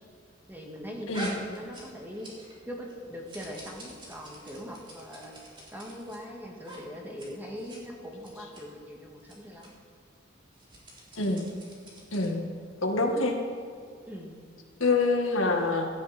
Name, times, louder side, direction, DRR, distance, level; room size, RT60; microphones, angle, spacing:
voice 1, 0.5-2.3 2.7-5.3 5.7-9.7 14.1-14.4, equal, 10° right, -1 dB, 2.1 m, -41 dB
sound 1, 1.1-2.6 2.9-6.2 6.6-6.8 7.1-7.3 7.6-7.8 8.2-8.6 9.2-9.3 9.6-9.7 10.5-12.4, right 1 dB, 25° right, 3.6 m, -45 dB
voice 2, 11.2-11.5 12.1-12.5 12.8-13.3 14.8-15.9, left 3 dB, 85° left, 2 dB, 2.0 m, -26 dB
16.5 x 13.5 x 4.5 m, 2.2 s
head